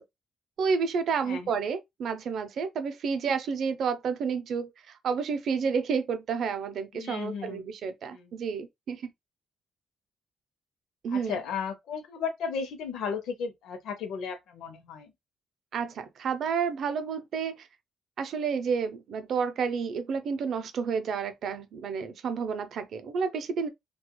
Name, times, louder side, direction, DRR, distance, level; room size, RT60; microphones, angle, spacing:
voice 1, 0.6-9.1 11.0-11.4 15.7-17.7 18.2-23.7, right 6 dB, 65° right, 0.5 m, -30 dB
voice 2, 6.9-7.6 8.1-8.3 11.1-15.1, left 6 dB, 85° left, 0.6 m, -35 dB
2.9 x 2.3 x 2.2 m
cardioid pair, 90°, 0 cm